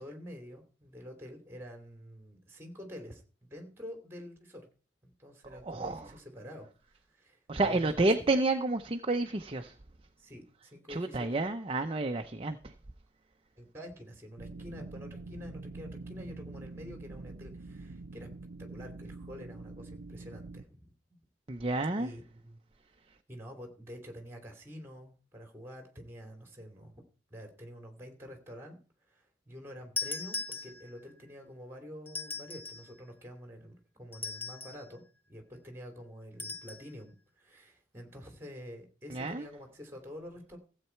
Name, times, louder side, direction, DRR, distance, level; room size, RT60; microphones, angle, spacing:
voice 1, 0.0-4.7 5.0-6.7 7.1-7.9 10.2-11.4 13.6-18.3 18.6-21.2 21.8-22.6 23.3-27.0 27.3-28.8 29.1-40.6, equal, 15° right, 2.9 m, -48 dB
voice 2, 5.5-6.1 7.5-9.7 10.9-12.7 21.5-22.1 39.1-39.5, right 2 dB, 30° right, 0.6 m, -30 dB
sound 1, 14.4-20.6, right 3 dB, 85° right, 0.6 m, -45 dB
sound 2, 30.0-31.1 32.1-32.9 34.1-34.9 36.4-36.8, left 4 dB, 10° left, 0.7 m, -39 dB
15.5 x 8.2 x 4.5 m
head